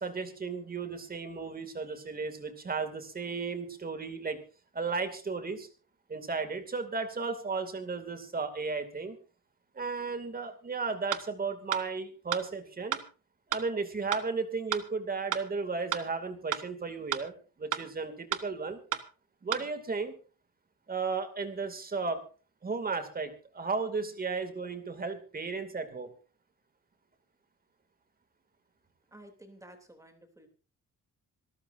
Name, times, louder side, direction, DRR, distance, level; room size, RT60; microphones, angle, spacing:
voice 1, 0.0-4.4 4.7-5.7 6.1-9.2 9.7-13.0 13.5-17.3 17.6-18.8 19.4-20.1 20.9-22.2 22.6-26.1, right 4 dB, 25° right, 8 dB, 2.5 m, -34 dB
sound 1, 11.1-11.2 11.7-11.8 12.3-12.4 12.9-13.0 13.5-13.6 14.1-14.2 14.7-14.8 15.3-15.4 15.9-16.0 16.5-16.6 17.1-17.2 17.7-17.8 18.3-18.4 18.9-19.0 19.5-19.6, right 10 dB, 65° right, 1.4 m, -31 dB
voice 2, 29.1-30.5, right 1 dB, 10° right, 5 dB, 3.1 m, -53 dB
26.5 x 13.0 x 2.7 m, 0.36 s
wide cardioid pair, 160°, 33 cm